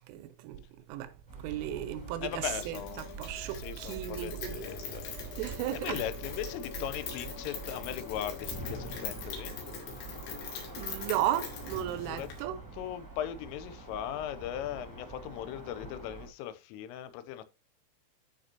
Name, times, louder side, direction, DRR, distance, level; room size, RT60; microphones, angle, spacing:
voice 1, 0.1-0.6 0.9-1.1 1.4-2.8 3.2-4.7 5.4-6.0 10.8-12.6, right 12 dB, 85° right, 3.2 m, -35 dB
Musical instrument, 1.3-10.0, left 5 dB, 50° left, 2.7 m, -52 dB
sound 1, 1.3-16.3, right 3 dB, 15° right, 0.7 m, -45 dB
voice 2, 2.2-3.2 3.5-5.1 5.4-9.6 12.1-12.3 12.7-17.4, left 11 dB, 85° left, 3.3 m, -39 dB
Rain, 2.6-12.4, left 6 dB, 70° left, 4.8 m, -43 dB
13.5 x 5.0 x 2.9 m
omnidirectional pair, 5.8 m